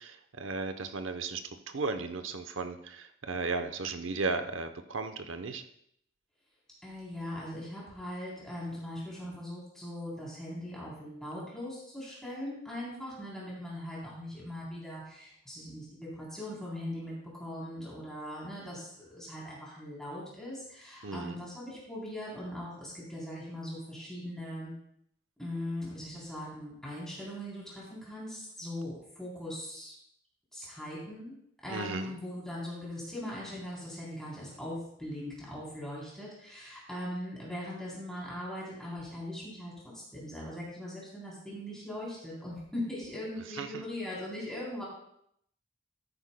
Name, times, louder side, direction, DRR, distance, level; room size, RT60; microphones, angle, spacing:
voice 1, 0.0-5.6 21.0-21.4 31.7-32.1 43.5-43.9, right 3 dB, 85° right, 9 dB, 0.8 m, -35 dB
voice 2, 6.8-24.7 25.4-29.9 30.5-31.4 31.6-44.8, left 1 dB, 5° left, -7 dB, 3.5 m, -40 dB
13.5 x 9.8 x 2.2 m, 0.71 s
head